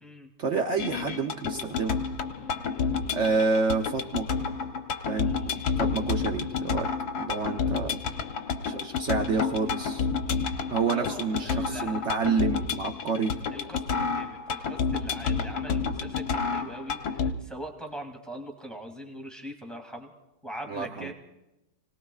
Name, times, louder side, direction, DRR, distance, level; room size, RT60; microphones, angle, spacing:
voice 1, 0.4-2.0 3.1-4.3 5.1-5.3 5.8-6.9 7.2-8.0 8.6-10.1 10.7-13.4 20.7-21.1, right 4 dB, 75° right, 4 dB, 0.6 m, -28 dB
sound 1, 0.8-17.3, left 5 dB, 55° left, 1.2 m, -30 dB
voice 2, 2.4-2.9 5.1-5.6 10.9-12.0 13.5-20.1 20.4-21.1, equal, ahead, 3 dB, 1.8 m, -42 dB
29.5 x 19.0 x 2.4 m, 0.97 s
omnidirectional pair, 2.4 m